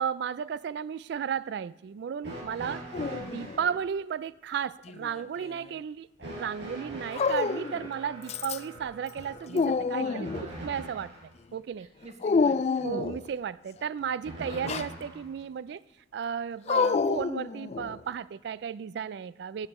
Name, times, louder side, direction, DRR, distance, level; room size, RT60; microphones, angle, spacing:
voice 1, 0.0-2.8 3.2-10.3 10.6-11.1 11.5-11.9 12.8-15.8 16.1-19.7, right 7 dB, 65° right, 0.3 m, -34 dB
sound 1, 2.2-3.7 6.2-11.3 14.2-15.3 16.5-16.6 17.7-17.8, right 2 dB, 90° right, 5.2 m, -42 dB
voice 2, 2.6-3.0 9.9-10.7 11.8-13.0, right 1 dB, 40° right, 1.7 m, -47 dB
Dog, 2.9-3.8 4.9-5.7 7.1-7.9 8.3-8.8 9.2-10.5 12.2-13.3 14.5-14.9 16.7-18.0, left 4 dB, 35° left, 0.3 m, -28 dB
16.0 x 8.7 x 4.3 m
head